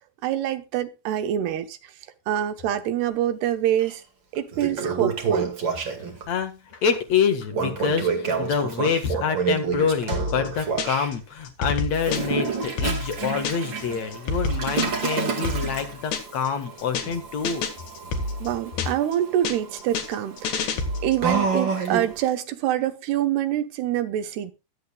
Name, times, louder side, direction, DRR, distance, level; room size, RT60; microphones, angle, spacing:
voice 1, 0.2-1.8 2.3-4.0 4.3-5.5 18.4-20.7 21.0-24.5, right 11 dB, 75° right, 3.1 m, -26 dB
Toilet flush, 3.8-3.9 4.4-6.3 7.5-11.1 11.9-22.3, right 5 dB, 40° right, 2.0 m, -29 dB
voice 2, 6.3-17.6, left 6 dB, 50° left, 2.3 m, -26 dB
sound 1, 10.1-11.2 11.5-13.8 14.1-16.5 16.8-17.2 17.5-19.2 19.5-21.3, left 3 dB, 80° left, 4.0 m, -29 dB
22.0 x 8.1 x 2.4 m
omnidirectional pair, 4.8 m